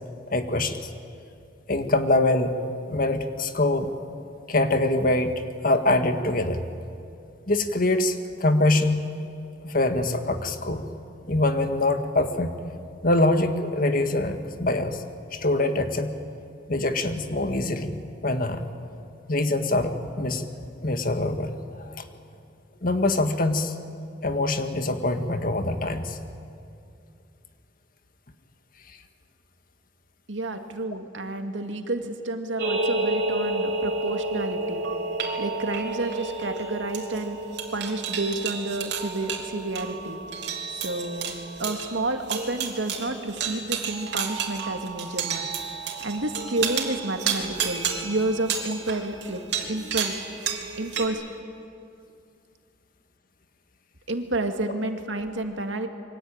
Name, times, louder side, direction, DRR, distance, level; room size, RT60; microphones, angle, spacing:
voice 1, 0.3-0.8 1.7-2.6 2.9-3.9 4.5-6.6 7.5-9.0 9.6-10.8 11.3-12.6 13.0-15.0 15.3-16.1 16.7-18.0 18.2-18.7 19.3-20.5 20.8-21.6 21.8-22.0 22.8-23.7 24.2-26.2, left 2 dB, 50° left, 7 dB, 1.8 m, -24 dB
voice 2, 30.3-34.8 35.4-37.4 37.7-40.2 40.7-41.3 41.6-45.5 46.0-49.4 49.7-50.3 50.8-51.2 54.1-55.9, right 2 dB, 85° right, 5 dB, 2.3 m, -30 dB
sound 1, 32.6-51.1, right 4 dB, 65° right, 3.6 m, -30 dB
27.5 x 24.0 x 9.0 m, 2.5 s
head